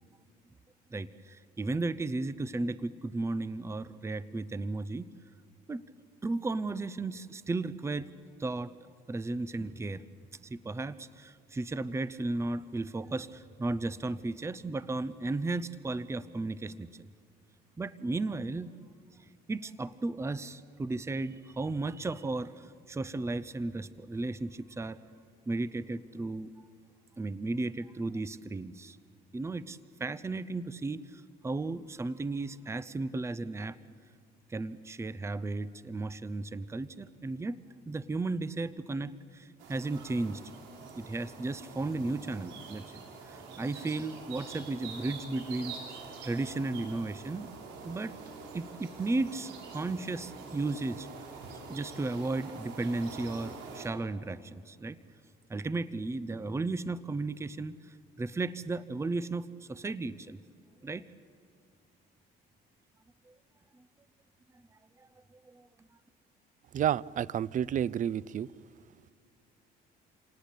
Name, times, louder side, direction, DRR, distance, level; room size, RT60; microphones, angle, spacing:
voice 1, 0.9-5.1 5.7-5.8 6.2-8.1 8.4-8.7 9.1-10.0 10.4-17.1 17.8-18.7 19.5-25.0 25.5-26.5 27.2-29.0 29.3-33.8 34.5-40.4 41.0-47.5 47.8-48.1 48.5-51.3 51.7-55.0 55.5-60.4 60.8-61.0 63.3-63.4 65.0-65.7, right 2 dB, 15° right, 16 dB, 0.7 m, -35 dB
sound 1, 39.6-53.9, right 4 dB, 85° right, 5.7 m, -46 dB
voice 2, 66.7-68.5, right 10 dB, 45° right, 22 dB, 0.6 m, -30 dB
28.0 x 19.0 x 8.4 m, 2.4 s
cardioid pair, 110°, 18 cm